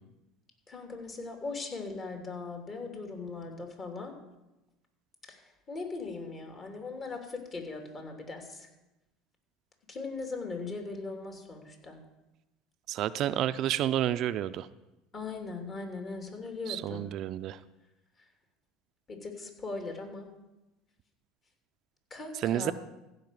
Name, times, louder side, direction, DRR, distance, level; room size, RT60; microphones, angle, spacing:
voice 1, 0.7-4.1 5.3-5.4 5.7-8.7 9.9-12.0 15.1-17.1 19.1-20.3 22.1-22.7, left 3 dB, 35° left, 3 dB, 3.0 m, -39 dB
voice 2, 12.9-14.7 16.7-17.6 22.4-22.7, right 12 dB, 55° right, 13 dB, 0.4 m, -30 dB
15.0 x 5.2 x 7.6 m, 0.97 s
hypercardioid pair, 80°, 0 cm